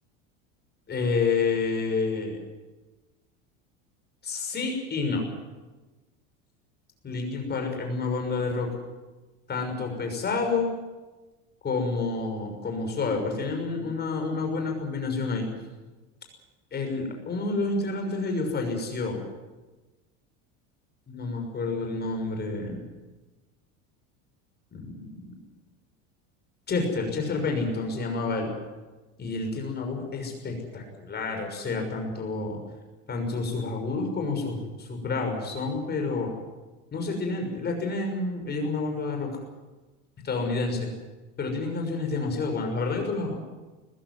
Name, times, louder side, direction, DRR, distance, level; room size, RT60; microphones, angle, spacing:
voice 1, 0.9-2.4 4.2-5.3 7.0-8.7 9.5-10.7 11.6-15.5 16.7-19.2 21.1-22.8 24.7-25.4 26.7-28.5 29.2-32.6 33.1-36.3 36.9-39.3 40.2-40.9 41.4-43.3, left 3 dB, 30° left, 3 dB, 6.3 m, -29 dB
21.0 x 15.0 x 9.5 m, 1.2 s
supercardioid pair, 125°, 35 cm